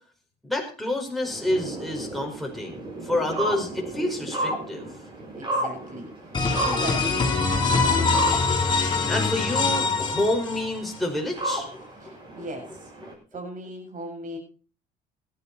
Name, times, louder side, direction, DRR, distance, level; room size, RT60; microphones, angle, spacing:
voice 1, 0.4-4.9 9.1-12.5, left 1 dB, ahead, 0 dB, 5.1 m, -29 dB
sound 1, 1.2-13.1, right 1 dB, 25° right, 7.0 m, -34 dB
voice 2, 5.3-8.3 12.0-12.9 13.3-14.4, right 1 dB, 45° right, 2 dB, 7.5 m, -38 dB
sound 2, 6.3-10.9, left 4 dB, 25° left, 5.0 m, -23 dB
17.0 x 11.5 x 4.2 m, 0.38 s
cardioid pair, 100°, 18 cm